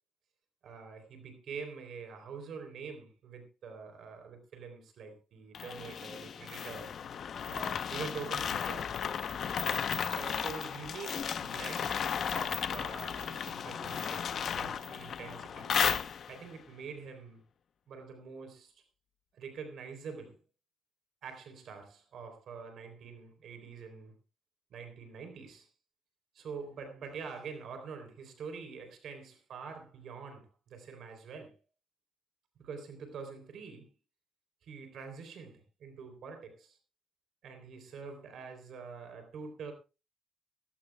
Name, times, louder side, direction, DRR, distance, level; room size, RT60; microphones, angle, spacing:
voice 1, 0.6-6.9 7.5-8.9 10.1-12.0 12.3-15.8 16.3-17.4 17.9-18.8 19.3-20.4 21.2-24.1 24.7-25.7 26.3-31.6 32.6-33.9 34.6-36.8 37.4-39.7, right 5 dB, 65° right, 3.6 m, -45 dB
sound 1, 5.5-16.5, left 7 dB, 55° left, 0.8 m, -34 dB
18.0 x 16.0 x 2.3 m
cardioid pair, 125°, 0 cm